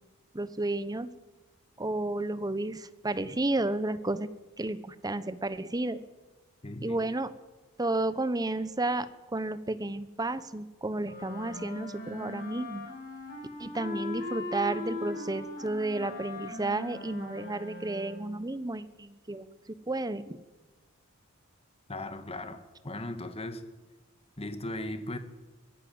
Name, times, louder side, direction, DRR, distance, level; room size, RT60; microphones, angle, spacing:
voice 1, 0.3-1.1 1.8-4.3 4.6-6.0 6.8-7.3 7.8-12.9 13.6-19.5 19.9-20.4, right 2 dB, 15° right, 14 dB, 0.9 m, -32 dB
voice 2, 6.6-7.0 21.9-23.6 24.4-25.2, left 1 dB, 25° left, 9 dB, 1.8 m, -37 dB
sound 1, 11.0-18.4, left 2 dB, 40° left, 5.4 m, -40 dB
23.0 x 16.0 x 8.0 m, 1.2 s
head